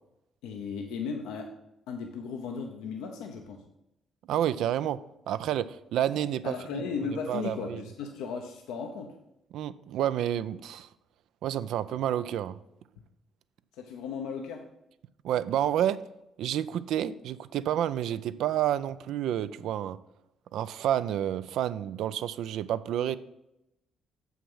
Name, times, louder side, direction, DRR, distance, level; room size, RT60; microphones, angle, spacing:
voice 1, 0.4-1.5 1.9-3.6 6.4-9.1 13.7-14.6, left 5 dB, 85° left, 3 dB, 0.7 m, -36 dB
voice 2, 4.3-5.0 5.3-6.8 7.3-7.8 9.5-10.9 11.4-12.6 15.2-16.0 16.4-20.0 20.5-23.2, right 11 dB, 75° right, 15 dB, 0.4 m, -29 dB
7.0 x 6.0 x 5.5 m, 0.87 s
supercardioid pair, 60°, 0 cm